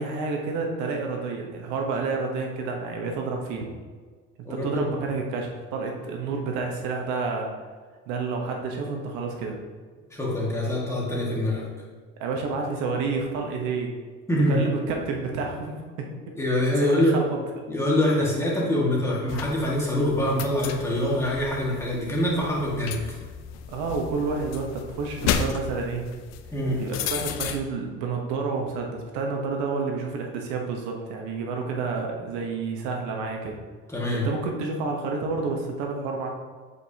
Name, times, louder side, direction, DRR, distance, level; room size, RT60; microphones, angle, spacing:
voice 1, 0.0-3.7 4.6-7.5 8.1-9.6 12.2-13.9 14.5-16.1 16.8-17.4 23.7-26.1 26.8-33.6 34.2-36.3, right 4 dB, 80° right, 1 dB, 1.1 m, -29 dB
voice 2, 4.5-4.9 10.1-11.6 14.3-14.7 16.4-17.1 17.7-23.0 26.5-26.8 33.9-34.3, left 1 dB, 10° left, -5 dB, 1.8 m, -24 dB
sound 1, 19.3-27.6, left 8 dB, 60° left, 0.6 m, -33 dB
7.7 x 4.8 x 2.8 m, 1.5 s
cardioid pair, 115°, 29 cm